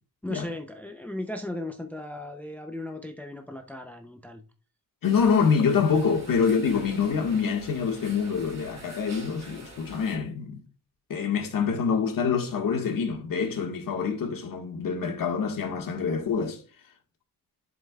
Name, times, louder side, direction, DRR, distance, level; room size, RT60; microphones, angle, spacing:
voice 1, 0.2-4.4, left 1 dB, 5° left, 0.6 m, -36 dB
voice 2, 5.0-10.6 11.1-16.6, left 6 dB, 70° left, 1.8 m, -26 dB
sound 1, 5.0-10.2, right 1 dB, 50° right, 2.7 m, -46 dB
11.0 x 5.4 x 2.4 m
wide cardioid pair, 125°, 34 cm